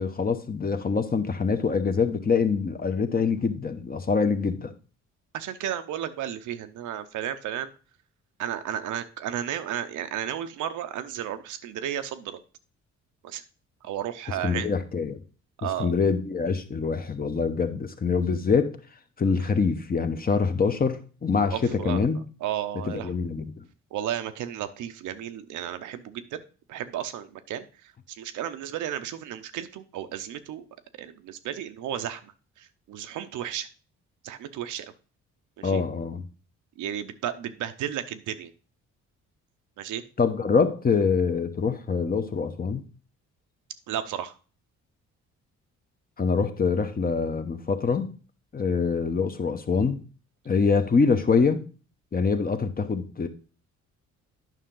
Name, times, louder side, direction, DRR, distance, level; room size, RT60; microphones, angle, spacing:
voice 1, 0.0-4.7 14.4-15.2 15.8-18.8 19.2-21.6 21.8-22.2 22.9-23.6 35.6-36.2 40.2-42.8 46.2-48.1 48.5-50.0 50.5-51.6 52.1-53.3, left 5 dB, 30° left, 8 dB, 0.9 m, -25 dB
voice 2, 5.3-7.7 8.4-12.4 13.2-13.4 13.8-14.7 15.6-15.9 21.5-22.0 22.4-23.1 23.9-26.4 26.7-27.7 28.1-30.6 30.9-32.3 32.6-33.7 34.2-34.9 35.6-35.8 36.8-38.5 39.8-40.0 43.9-44.3, right 10 dB, 80° right, 10 dB, 0.8 m, -33 dB
9.2 x 5.7 x 3.8 m, 0.37 s
cardioid pair, 90°, 30 cm